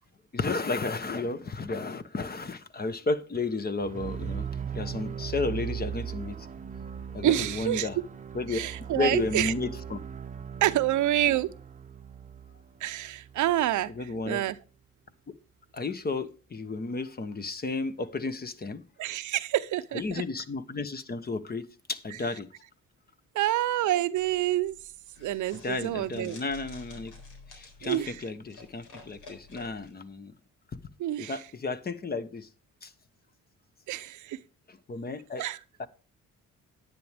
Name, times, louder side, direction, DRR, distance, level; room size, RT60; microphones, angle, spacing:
voice 1, 0.3-4.5 4.7-6.5 7.1-8.0 8.3-8.6 8.9-10.0 13.9-14.4 15.7-18.8 19.9-22.5 25.6-27.1 27.5-30.3 31.2-32.5 32.8-32.9 34.7-35.4 35.8-35.9, left 3 dB, 30° left, 1.1 m, -33 dB
sound 1, 3.8-13.8, right 8 dB, 25° right, 0.8 m, -38 dB
voice 2, 7.2-7.9 8.5-9.5 10.6-11.5 12.8-14.6 19.0-20.2 23.3-24.8 25.2-26.4 27.8-28.2 31.0-31.4 33.9-34.4 35.4-35.6, right 14 dB, 75° right, 0.7 m, -27 dB
sound 2, 24.1-29.9, left 3 dB, 90° left, 3.9 m, -50 dB
10.5 x 9.6 x 3.5 m
cardioid pair, 90°, 30 cm